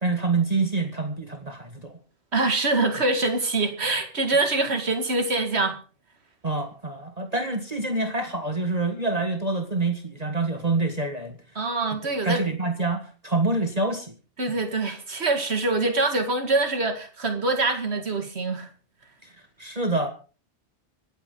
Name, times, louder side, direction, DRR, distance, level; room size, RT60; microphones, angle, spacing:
voice 1, 0.0-1.9 6.4-11.4 12.0-14.1 19.2-19.3 19.6-20.1, right 3 dB, 35° right, 1.6 m, -26 dB
voice 2, 2.3-5.8 11.6-12.4 14.4-18.7, right 3 dB, 70° right, 2.3 m, -24 dB
25.0 x 9.2 x 3.8 m
omnidirectional pair, 1.1 m